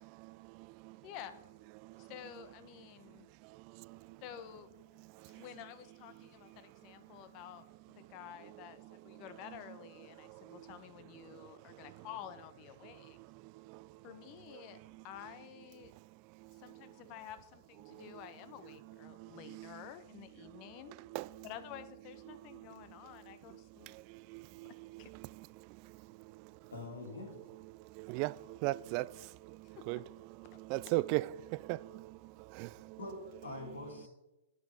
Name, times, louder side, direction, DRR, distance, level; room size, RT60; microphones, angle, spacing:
voice 1, 0.0-1.1 1.8-2.1 3.0-4.2 5.0-5.4 6.5-6.6 7.0-7.2 8.4-8.6 8.8-9.2 10.2-10.8 11.2-12.1 12.8-14.1 14.5-15.0 15.8-16.9 17.8-18.2 19.0-19.9 20.4-20.6 20.9-21.5 22.3-26.7 27.7-33.0, right 19 dB, 40° right, 0.3 m, -42 dB
voice 2, 1.0-1.4 2.0-3.3 4.2-4.7 5.2-13.2 14.0-14.8 15.0-15.9 16.5-20.9 21.4-23.9 24.6-25.1 29.6-29.8 30.5-30.6, left 11 dB, 40° left, 1.0 m, -51 dB
voice 3, 26.7-27.3 33.0-34.1, left 2 dB, 85° left, 3.1 m, -44 dB
9.6 x 7.7 x 5.3 m
hypercardioid pair, 120°, 0 cm